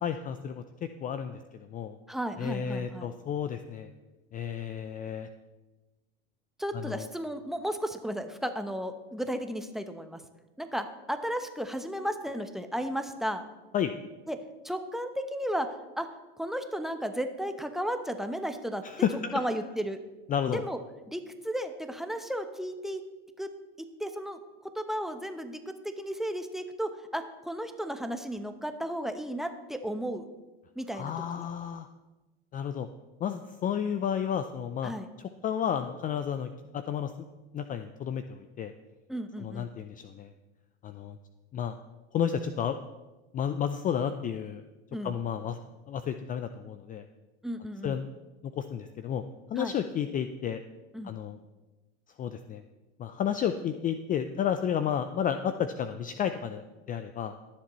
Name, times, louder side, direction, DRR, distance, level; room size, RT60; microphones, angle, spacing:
voice 1, 0.0-2.0 2.4-3.9 4.3-5.3 6.7-7.1 13.7-13.9 18.8-19.3 20.3-20.6 30.9-31.9 32.5-32.9 33.2-34.9 35.2-37.1 37.5-38.7 39.4-40.3 40.8-41.2 41.5-41.7 42.1-42.8 43.3-44.6 45.0-45.6 45.9-47.0 47.8-48.0 48.4-49.2 49.5-50.6 51.0-51.4 52.2-52.6 53.0-57.3, left 8 dB, 25° left, 10 dB, 0.5 m, -32 dB
voice 2, 2.1-3.1 6.6-10.2 10.6-13.4 14.3-14.4 14.6-16.1 16.4-18.8 19.3-20.0 20.5-20.8 21.1-23.0 23.4-23.5 23.8-24.4 24.7-30.3 30.8-31.5 34.8-35.1 39.1-39.7 44.9-45.1 47.4-48.0 49.6-49.7 50.9-51.1, equal, ahead, 7 dB, 0.9 m, -34 dB
21.5 x 7.3 x 3.1 m, 1.1 s
hypercardioid pair, 105°, 31 cm